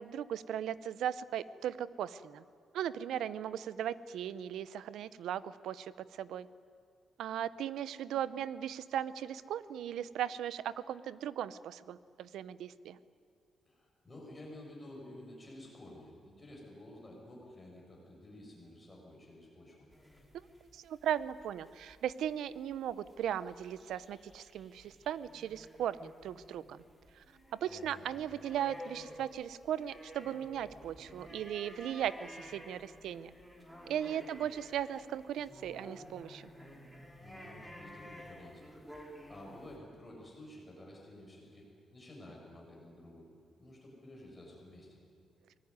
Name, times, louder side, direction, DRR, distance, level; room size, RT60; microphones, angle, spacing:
voice 1, 0.0-2.4 2.7-5.9 6.2-6.5 7.2-13.0 20.7-26.8 27.6-33.3 33.9-36.4, right 10 dB, 80° right, 16 dB, 0.7 m, -37 dB
voice 2, 13.6-19.9 27.7-28.0 37.2-38.7 39.3-43.2 43.6-45.0, left 1 dB, 15° left, -2 dB, 6.8 m, -52 dB
sound 1, 19.9-39.8, equal, 5° right, 3.2 m, -53 dB
24.5 x 19.5 x 9.6 m, 2.3 s
cardioid pair, 165°, 0 cm